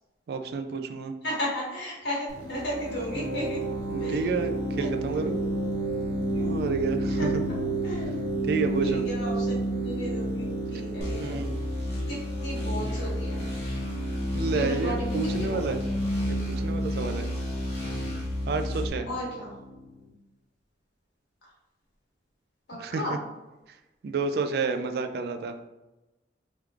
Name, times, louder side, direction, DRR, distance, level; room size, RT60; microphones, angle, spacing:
voice 1, 0.3-1.1 3.2-3.4 3.9-5.3 6.5-7.4 8.4-9.0 11.2-11.6 14.3-15.8 16.3-17.3 18.5-19.1 22.8-23.2 24.0-25.6, right 4 dB, 60° right, 7 dB, 0.3 m, -30 dB
voice 2, 1.2-3.6 4.0-4.3 4.8-5.3 6.3-6.7 7.0-8.4 8.8-11.4 12.1-13.4 14.5-16.0 19.1-19.5 22.7-23.2, equal, 75° left, -6 dB, 1.4 m, -35 dB
sound 1, 2.3-19.9, right 1 dB, 80° right, 1.0 m, -31 dB
sound 2, 11.0-18.9, left 1 dB, 40° left, 1.0 m, -33 dB
3.3 x 3.0 x 2.4 m, 1.0 s
head